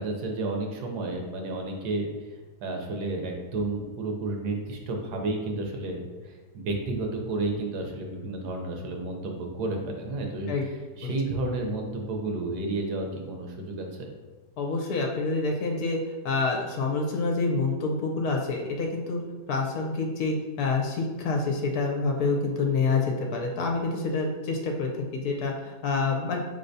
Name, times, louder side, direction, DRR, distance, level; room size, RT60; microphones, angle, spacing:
voice 1, 0.0-2.1 2.6-10.5 11.0-14.1, right 2 dB, 70° right, 2 dB, 1.2 m, -31 dB
voice 2, 14.6-16.0 16.2-19.2 19.5-26.4, left 3 dB, 70° left, 2 dB, 1.0 m, -27 dB
5.4 x 3.3 x 2.6 m, 1.3 s
omnidirectional pair, 1.8 m